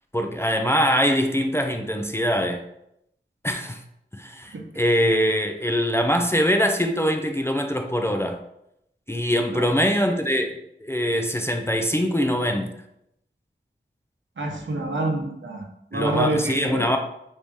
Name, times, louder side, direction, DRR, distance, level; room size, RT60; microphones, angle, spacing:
voice 1, 0.1-2.6 3.4-3.8 4.1-8.4 9.1-12.7 15.9-17.0, equal, 15° left, 4 dB, 0.3 m, -23 dB
voice 2, 14.4-16.9, right 1 dB, 75° right, 1 dB, 0.7 m, -27 dB
3.1 x 2.7 x 3.4 m, 0.79 s
wide cardioid pair, 55°, 20 cm